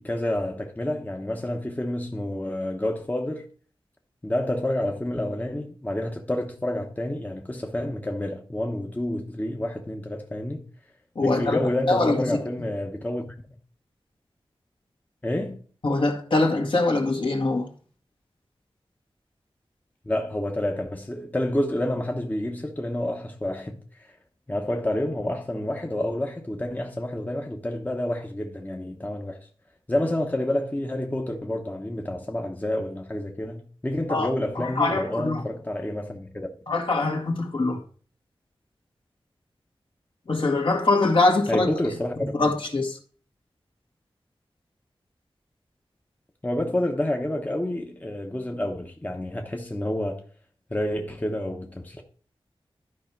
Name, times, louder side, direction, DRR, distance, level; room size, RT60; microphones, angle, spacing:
voice 1, 0.0-3.5 4.2-10.6 11.2-13.3 15.2-15.6 20.0-24.1 24.5-29.4 29.9-36.5 41.5-42.3 46.4-50.2 50.7-52.0, left 1 dB, 15° left, 1.0 m, -29 dB
voice 2, 11.2-11.6 11.9-12.4 15.8-17.7 34.1-34.3 34.6-35.4 36.7-37.8 40.3-41.7 42.2-43.0, left 2 dB, 60° left, 1.9 m, -23 dB
12.0 x 4.9 x 4.5 m
wide cardioid pair, 90°, 10 cm